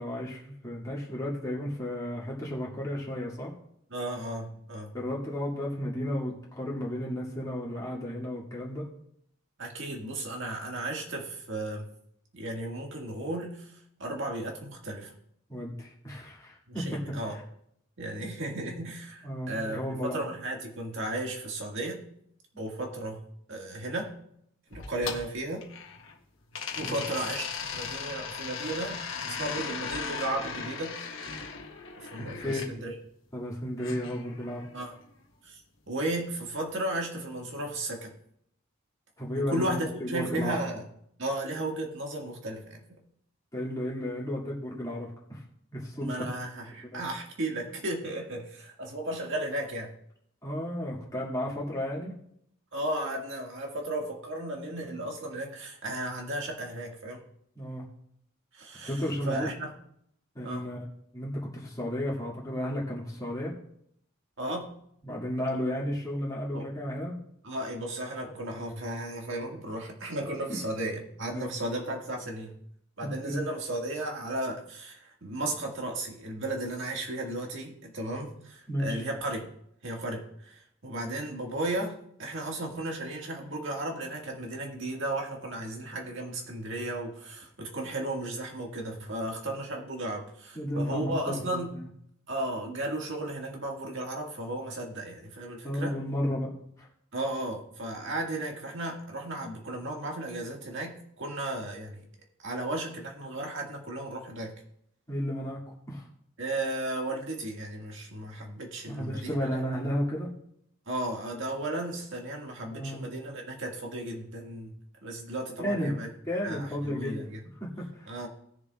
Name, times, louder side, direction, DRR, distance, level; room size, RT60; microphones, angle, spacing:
voice 1, 0.0-3.5 4.9-8.8 15.5-17.4 19.2-20.2 26.8-27.1 32.4-32.7 33.3-34.7 39.2-40.6 43.5-45.4 45.7-46.2 46.8-47.1 50.4-52.1 57.6-57.8 58.8-59.5 60.3-60.8 61.1-63.5 65.0-67.1 70.5-70.6 71.3-71.5 73.0-73.4 78.7-79.0 90.5-91.4 91.7-91.8 95.6-96.5 96.8-96.9 105.1-105.6 105.9-106.0 108.8-110.3 112.7-113.1 115.6-115.9 116.3-117.2 117.6-118.1, equal, 15° left, -5 dB, 2.2 m, -33 dB
voice 2, 3.9-5.0 9.6-11.9 12.3-13.7 14.0-15.1 16.7-17.4 18.0-22.0 22.6-23.2 23.5-24.1 24.7-25.7 26.7-27.5 27.7-29.0 29.3-31.0 32.0-32.9 34.7-34.9 35.4-35.6 35.9-38.1 39.3-40.8 41.2-42.8 46.0-50.0 52.7-57.2 58.5-59.7 60.4-60.7 64.4-64.7 66.5-66.7 67.4-72.6 73.0-79.5 79.8-91.8 92.3-96.0 97.1-102.0 102.4-104.6 106.4-109.6 110.9-114.7 115.0-116.1 116.4-117.4 118.1-118.3, right 1 dB, 60° right, 0 dB, 1.9 m, -35 dB
sound 1, 24.7-26.1 26.5-32.7 33.8-34.9, left 6 dB, 65° left, 1.2 m, -38 dB
19.0 x 6.8 x 2.4 m, 0.72 s
head